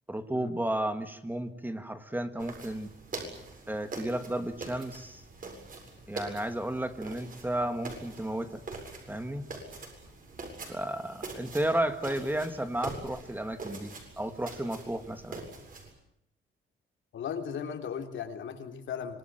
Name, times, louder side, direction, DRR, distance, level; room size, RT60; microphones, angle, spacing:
voice 1, 0.1-2.9 3.7-5.2 6.1-8.6 9.1-9.5 10.7-15.4, right 1 dB, 10° right, 9 dB, 1.7 m, -33 dB
sound 1, 2.4-15.9, right 3 dB, 40° right, 7.7 m, -44 dB
voice 2, 17.1-19.2, left 7 dB, 65° left, 6 dB, 3.5 m, -37 dB
26.0 x 21.0 x 9.0 m, 0.73 s
cardioid pair, 135°, 21 cm